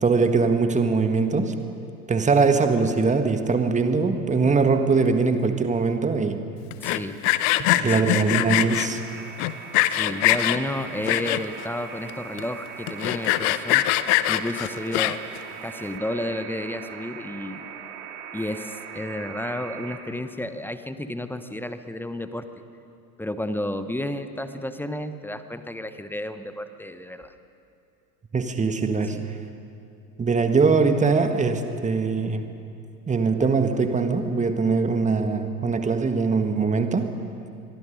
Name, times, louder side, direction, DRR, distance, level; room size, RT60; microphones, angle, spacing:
voice 1, 0.0-1.5 2.1-6.4 7.6-9.0 28.3-29.2 30.2-32.5 33.1-37.1, right 4 dB, 15° right, 7 dB, 1.7 m, -22 dB
Sawing, 6.7-8.9 9.4-10.6 11.0-11.6 12.1-12.2 12.4-12.5 12.9-15.4, left 16 dB, 45° left, 0.9 m, -22 dB
voice 2, 6.8-7.2 7.5-8.4 9.9-13.9 14.3-15.2 15.6-17.6 18.3-22.5 23.2-27.3 29.1-29.3, left 1 dB, 5° left, 10 dB, 0.9 m, -32 dB
sound 1, 8.5-20.0, right 6 dB, 50° right, 3.5 m, -40 dB
25.5 x 22.5 x 5.4 m, 2.6 s
figure-of-eight pair, 80°, 47 cm